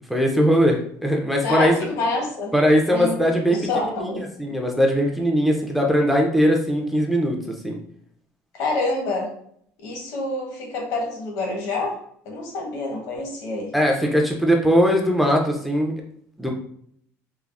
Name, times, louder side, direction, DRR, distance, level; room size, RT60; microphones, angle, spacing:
voice 1, 0.0-1.7 2.5-7.8 13.7-16.0 16.4-16.5, equal, ahead, 0 dB, 0.3 m, -20 dB
voice 2, 1.4-2.5 2.9-4.2 8.5-9.3 9.8-12.0 12.2-13.7, left 2 dB, 65° left, 1 dB, 0.8 m, -27 dB
3.2 x 2.0 x 2.3 m, 0.65 s
cardioid pair, 165°, 6 cm